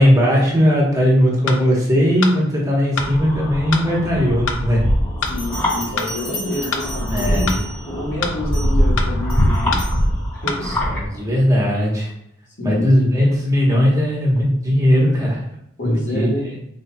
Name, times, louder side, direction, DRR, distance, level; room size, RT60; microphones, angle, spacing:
voice 1, 0.0-4.8 7.1-7.5 10.6-12.1 12.6-15.4 15.8-16.5, equal, 15° right, -3 dB, 1.0 m, -18 dB
sound 1, 1.5-1.6 2.2-2.4 3.0-3.1 3.7-3.9 4.5-4.6 5.2-5.4 6.0-6.1 6.7-6.9 7.5-7.6 8.2-8.4 9.0-9.1 9.7-9.9 10.5-10.6, left 5 dB, 85° left, 0.5 m, -24 dB
sound 2, 3.0-11.0, equal, 15° left, 1.7 m, -22 dB
voice 2, 5.2-9.8 10.3-10.8 12.6-13.0 15.8-16.4, left 1 dB, 60° left, -3 dB, 1.3 m, -27 dB
Bell, 5.3-8.0 8.5-8.8 9.3-10.0, right 1 dB, 40° left, 1.7 m, -34 dB
4.6 x 4.2 x 2.2 m, 0.78 s
head